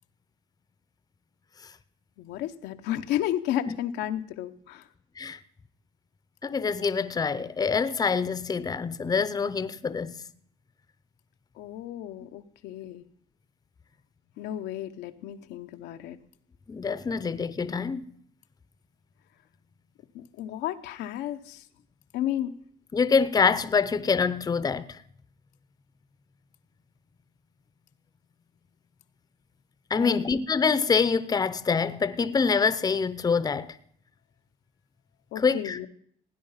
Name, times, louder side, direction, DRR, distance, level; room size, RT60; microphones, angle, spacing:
voice 1, 2.2-4.8 11.6-13.0 14.4-16.2 20.1-21.6 22.1-22.5 30.0-30.3 35.3-35.9, left 12 dB, 90° left, 0.9 m, -32 dB
voice 2, 6.4-10.2 16.7-18.0 22.9-25.0 29.9-33.8 35.4-35.8, left 5 dB, 20° left, 0.7 m, -25 dB
17.0 x 9.6 x 5.7 m
cardioid pair, 110°, 17 cm